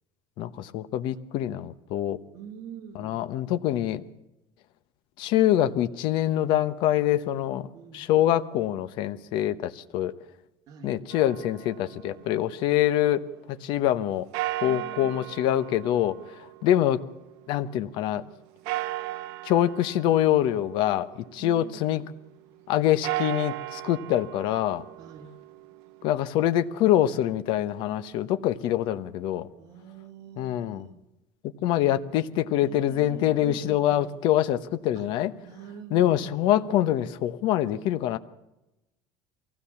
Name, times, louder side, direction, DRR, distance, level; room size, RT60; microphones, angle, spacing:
voice 1, 0.4-2.2 2.9-4.0 5.2-7.7 7.9-10.1 10.8-13.2 13.6-14.3 14.6-17.0 17.5-18.3 19.4-21.1 21.3-22.0 22.7-24.8 26.0-29.5 30.4-30.9 31.6-35.3 35.9-38.2, left 12 dB, 65° left, 12 dB, 1.1 m, -25 dB
voice 2, 2.3-3.2 7.7-8.0 10.7-11.0 14.6-15.4 21.4-21.9 25.0-25.3 29.6-31.0 32.6-34.1 34.9-35.1 35.4-36.7, right 8 dB, 45° right, 2 dB, 2.8 m, -44 dB
sound 1, 11.1-13.2 14.3-17.7 18.7-21.6 22.9-26.9, right 16 dB, 85° right, 0.7 m, -37 dB
23.5 x 16.0 x 7.1 m, 0.94 s
cardioid pair, 155°, 9 cm